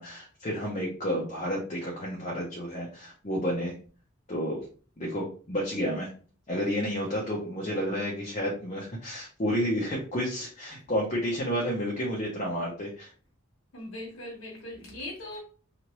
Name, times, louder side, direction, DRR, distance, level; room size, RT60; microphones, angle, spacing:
voice 1, 0.0-3.7 4.3-4.6 5.0-6.1 6.5-13.1, equal, 35° left, 0.7 m, -31 dB
voice 2, 7.1-7.5 13.7-15.4, left 1 dB, 70° left, 1.1 m, -41 dB
2.9 x 2.5 x 2.9 m
head